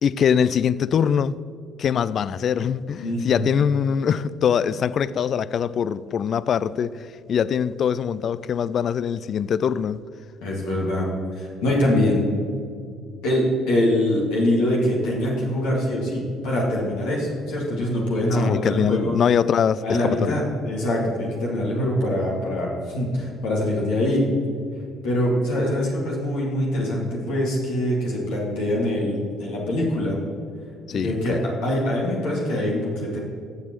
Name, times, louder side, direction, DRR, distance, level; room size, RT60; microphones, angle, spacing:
voice 1, 0.0-1.3 1.8-10.0 18.3-20.4 30.9-31.4, left 7 dB, 50° left, 0.3 m, -23 dB
voice 2, 3.0-3.4 10.4-11.1 11.3-12.2 13.2-19.2 19.8-24.3 25.0-30.2 30.9-33.2, left 1 dB, 70° left, 2.1 m, -24 dB
14.5 x 7.0 x 3.1 m
hypercardioid pair, 55°, 0 cm